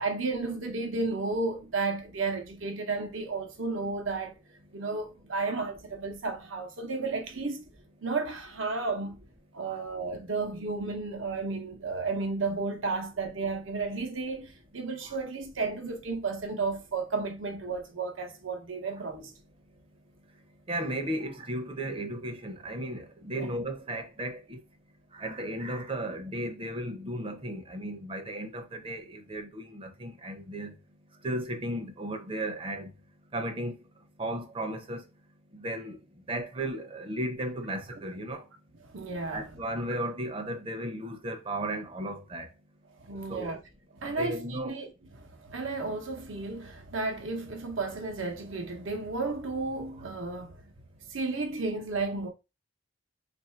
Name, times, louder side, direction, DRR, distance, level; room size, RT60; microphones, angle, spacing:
voice 1, 0.0-4.3 4.7-7.7 8.0-9.2 9.5-19.3 23.4-23.5 38.8-39.4 43.0-43.6 44.0-44.9 45.1-50.5 51.1-52.3, right 3 dB, 75° right, 0.9 m, -33 dB
voice 2, 20.7-24.6 25.1-30.7 31.2-32.9 33.3-33.7 34.2-35.0 35.5-36.0 36.3-38.4 39.3-42.5 43.3-43.5 44.1-44.8, right 1 dB, 25° right, 0.6 m, -35 dB
3.1 x 2.6 x 4.3 m
head